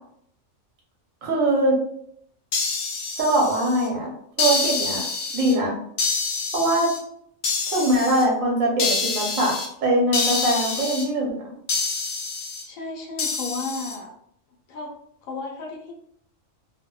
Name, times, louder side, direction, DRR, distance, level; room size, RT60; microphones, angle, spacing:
voice 1, 1.2-1.8 3.2-4.1 4.4-5.0 5.3-5.7 6.5-6.9 7.7-9.5 9.8-11.4, right 1 dB, 75° right, -2 dB, 1.2 m, -22 dB
sound 1, 2.5-3.9 4.4-5.5 6.0-7.0 7.4-8.2 8.8-9.7 10.1-11.0 11.7-12.6 13.2-14.0, left 4 dB, 65° left, 0.7 m, -26 dB
voice 2, 12.6-14.1 14.7-14.9 15.2-15.9, left 3 dB, 85° left, 0 dB, 1.0 m, -33 dB
2.7 x 2.1 x 2.2 m, 0.69 s
omnidirectional pair, 1.4 m